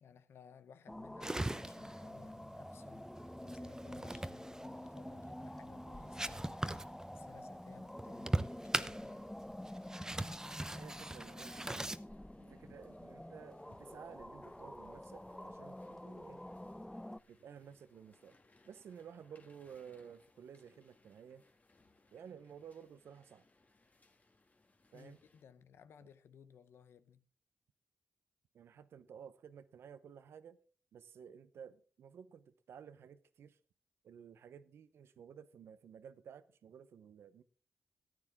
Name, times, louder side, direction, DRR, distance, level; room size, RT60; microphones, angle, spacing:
voice 1, 0.0-3.1 3.4-6.9 7.1-9.3 12.6-12.8 24.9-27.2, left 7 dB, 85° left, 0.8 m, -60 dB
sound 1, 0.9-17.2, left 1 dB, 5° left, 0.4 m, -49 dB
sound 2, 1.2-12.0, right 1 dB, 15° right, 0.8 m, -42 dB
sound 3, 9.8-25.4, left 2 dB, 40° left, 2.0 m, -69 dB
voice 2, 10.7-11.9 12.4-16.4 17.3-18.4 18.6-21.5 22.1-23.5 24.9-25.2 26.0-26.1 28.5-30.6 30.9-33.6 34.0-37.4, right 7 dB, 80° right, 0.8 m, -54 dB
14.0 x 9.6 x 3.6 m
cardioid pair, 55°, 4 cm